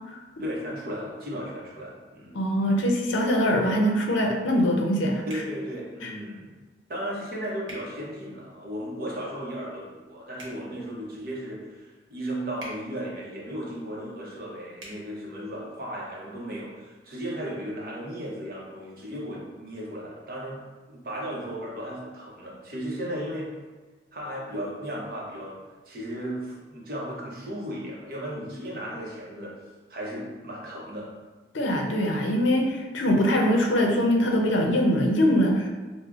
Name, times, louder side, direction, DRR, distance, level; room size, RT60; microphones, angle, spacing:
voice 1, 0.4-2.4 5.3-6.5 6.9-20.6 20.9-23.5 24.1-25.6 25.9-29.5 29.9-31.1, equal, 50° right, -4 dB, 0.7 m, -35 dB
voice 2, 2.3-5.2 6.0-6.1 31.5-35.7, equal, 90° left, 1 dB, 0.5 m, -23 dB
sound 1, 5.3-5.5 7.6-7.8 10.3-10.6 12.6-12.8 14.8-15.0, right 1 dB, 85° right, 0.9 m, -42 dB
4.8 x 2.1 x 2.4 m, 1.3 s
head